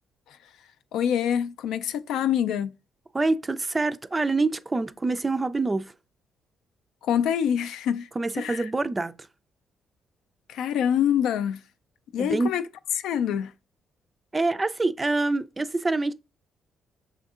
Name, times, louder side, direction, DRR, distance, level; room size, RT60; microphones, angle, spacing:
voice 1, 0.9-2.7 7.0-8.1 8.3-8.7 10.5-11.6 12.1-12.6 13.0-13.5, left 9 dB, 85° left, 0.3 m, -25 dB
voice 2, 3.1-5.9 8.2-9.2 12.2-12.5 14.3-16.1, right 3 dB, 20° right, 0.3 m, -26 dB
6.1 x 2.6 x 2.4 m
cardioid pair, 90°, 0 cm